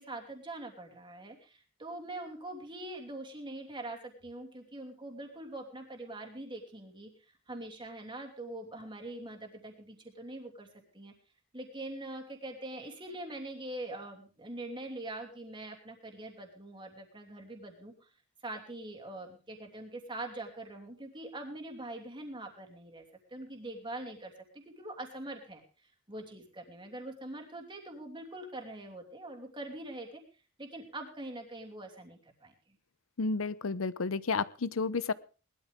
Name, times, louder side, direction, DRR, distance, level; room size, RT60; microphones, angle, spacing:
voice 1, 0.0-10.7 10.9-11.1 11.5-18.1 18.4-23.0 23.3-25.6 26.1-30.2 30.6-32.5, right 1 dB, 25° right, 2 dB, 2.9 m, -43 dB
voice 2, 33.2-35.1, left 4 dB, 70° left, 17 dB, 0.7 m, -31 dB
19.5 x 13.0 x 3.6 m, 0.34 s
head